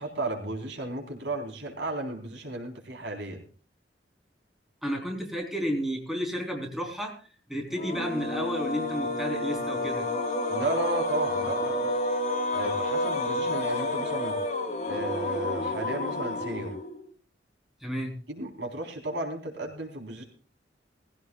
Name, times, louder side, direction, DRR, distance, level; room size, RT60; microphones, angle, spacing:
voice 1, 0.0-3.4 10.5-11.9 12.5-14.4 14.9-16.7 18.3-20.2, right 2 dB, 85° right, 2 dB, 4.0 m, -34 dB
voice 2, 4.8-7.1 7.5-10.1 17.8-18.2, equal, ahead, 1 dB, 3.8 m, -32 dB
sound 1, 7.7-17.1, left 2 dB, 40° left, 3.3 m, -30 dB
20.0 x 16.0 x 2.4 m, 0.38 s
head